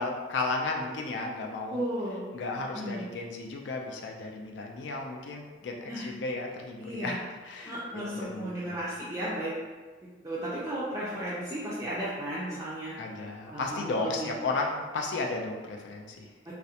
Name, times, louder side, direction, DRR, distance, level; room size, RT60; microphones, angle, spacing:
voice 1, 0.0-1.8 2.3-7.2 7.4-8.8 13.0-16.3, left 3 dB, 70° left, 1 dB, 0.4 m, -34 dB
voice 2, 1.7-2.2 2.7-3.1 5.9-6.1 6.8-7.2 7.7-9.5 10.2-13.0 13.5-14.3 16.5-16.6, right 1 dB, 15° right, -9 dB, 0.3 m, -34 dB
2.4 x 2.0 x 2.7 m, 1.4 s
head